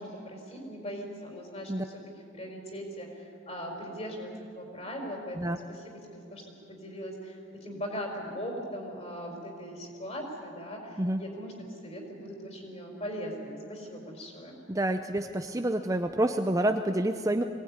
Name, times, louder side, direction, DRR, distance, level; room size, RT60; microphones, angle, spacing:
voice 1, 0.0-2.0 2.3-14.6, equal, 30° left, 1 dB, 4.6 m, -40 dB
voice 2, 14.7-17.4, right 1 dB, 15° right, 6 dB, 0.6 m, -28 dB
23.0 x 19.0 x 9.7 m, 2.6 s
head